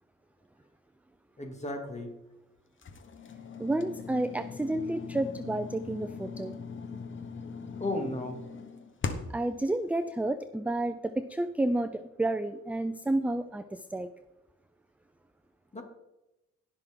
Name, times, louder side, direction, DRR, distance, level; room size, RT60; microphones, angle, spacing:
voice 1, 1.4-2.1 7.8-8.4 15.7-15.8, left 2 dB, 25° left, 4 dB, 2.4 m, -34 dB
sound 1, 2.8-9.5, left 5 dB, 40° left, 1.3 m, -40 dB
voice 2, 3.6-6.6 9.3-14.1, right 1 dB, 5° right, 11 dB, 0.4 m, -30 dB
17.5 x 6.2 x 3.8 m, 0.94 s
cardioid pair, 90°, 30 cm